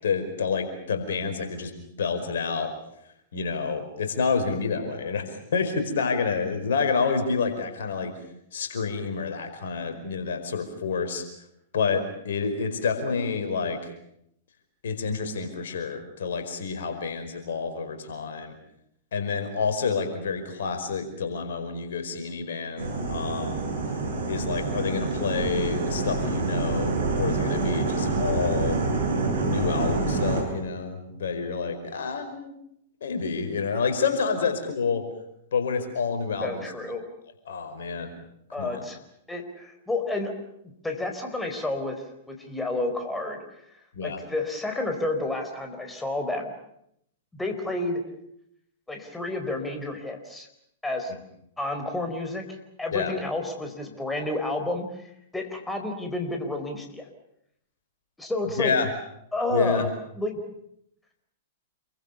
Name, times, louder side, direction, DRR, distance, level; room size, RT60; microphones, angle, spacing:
voice 1, 0.0-2.7 3.3-5.2 5.5-8.1 8.5-11.2 11.7-13.8 14.8-18.6 19.1-23.6 24.3-28.8 29.4-32.5 33.0-35.0 35.5-36.6 37.4-38.1 38.6-38.8 43.9-44.2 52.9-53.1 58.6-58.9 59.5-59.9, left 5 dB, 60° left, 7 dB, 5.0 m, -28 dB
sound 1, 22.8-30.4, right 3 dB, 65° right, 7.3 m, -27 dB
voice 2, 36.4-37.0 38.5-39.0 39.3-40.3 40.8-43.4 43.7-46.5 47.3-48.0 48.9-50.5 50.8-51.1 51.6-52.4 52.8-55.0 55.3-57.1 58.2-58.7 59.3-59.9 60.1-60.4, left 2 dB, 5° left, 4 dB, 4.3 m, -30 dB
28.0 x 23.5 x 7.1 m, 0.76 s
figure-of-eight pair, 100°, 0 cm